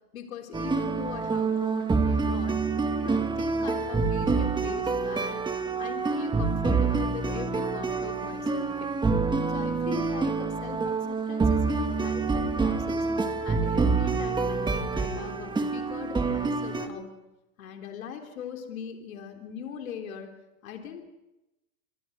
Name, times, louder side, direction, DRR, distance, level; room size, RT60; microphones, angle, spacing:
voice 1, 0.1-2.6 2.9-5.4 5.8-9.0 9.5-13.1 13.4-17.1 17.6-20.3 20.6-21.1, left 8 dB, 75° left, 4 dB, 3.6 m, -40 dB
sound 1, 0.5-16.9, right 4 dB, 10° right, 2.1 m, -27 dB
27.5 x 23.0 x 6.7 m, 0.97 s
hypercardioid pair, 120°, 41 cm